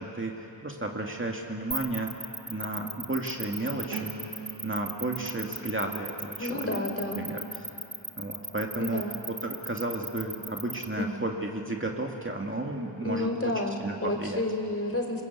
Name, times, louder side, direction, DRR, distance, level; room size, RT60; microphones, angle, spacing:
voice 1, 0.0-2.1 2.5-4.1 4.6-6.8 7.2-7.7 8.2-13.5 13.8-14.4, right 2 dB, 25° right, 1 dB, 2.3 m, -33 dB
sound 1, 1.7-10.8, right 2 dB, ahead, 1.6 m, -36 dB
sound 2, 3.9-9.8 10.3-10.7, right 4 dB, 90° right, 3.5 m, -46 dB
voice 2, 6.4-7.2 8.8-9.2 11.0-11.2 13.0-15.2, left 1 dB, 30° left, 3 dB, 4.3 m, -31 dB
30.0 x 21.5 x 8.3 m, 2.9 s
wide cardioid pair, 50°, 46 cm